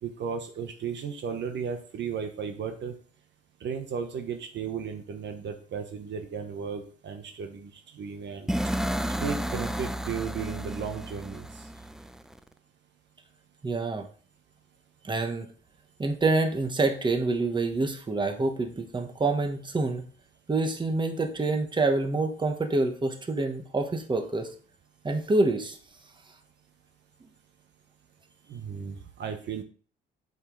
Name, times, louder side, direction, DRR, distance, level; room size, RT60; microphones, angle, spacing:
voice 1, 0.0-3.0 3.6-8.5 9.2-11.5 28.5-29.6, right 6 dB, 65° right, 5 dB, 1.1 m, -35 dB
sound 1, 8.5-12.4, equal, ahead, 0.4 m, -32 dB
voice 2, 13.6-14.1 15.0-15.5 16.0-20.0 20.5-24.5 25.0-25.8, right 3 dB, 25° right, 4 dB, 1.3 m, -27 dB
7.9 x 5.1 x 3.9 m, 0.43 s
cardioid pair, 90°, 20 cm